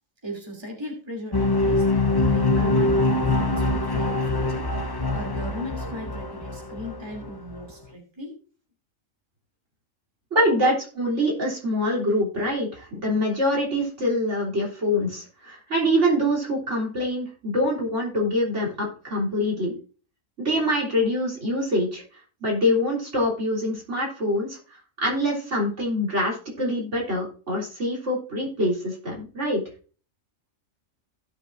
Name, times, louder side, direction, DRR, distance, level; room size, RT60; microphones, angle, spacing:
voice 1, 0.2-4.7 5.1-8.4 10.6-10.7, equal, 20° right, 1 dB, 2.8 m, -37 dB
sound 1, 1.3-7.7, left 2 dB, 25° left, 0.6 m, -24 dB
voice 2, 10.3-19.7 20.4-22.0 22.4-29.6, equal, 60° right, -3 dB, 3.9 m, -25 dB
16.5 x 6.8 x 2.6 m, 0.38 s
omnidirectional pair, 1.4 m